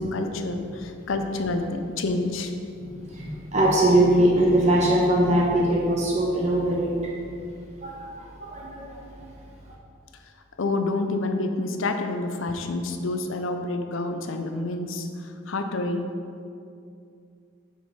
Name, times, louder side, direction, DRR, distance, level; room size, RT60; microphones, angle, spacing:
voice 1, 0.0-2.5 10.6-16.1, left 2 dB, 75° left, 6 dB, 0.6 m, -28 dB
voice 2, 3.1-7.1 7.8-9.1, right 1 dB, 35° right, -4 dB, 1.0 m, -22 dB
7.6 x 5.5 x 4.1 m, 2.5 s
head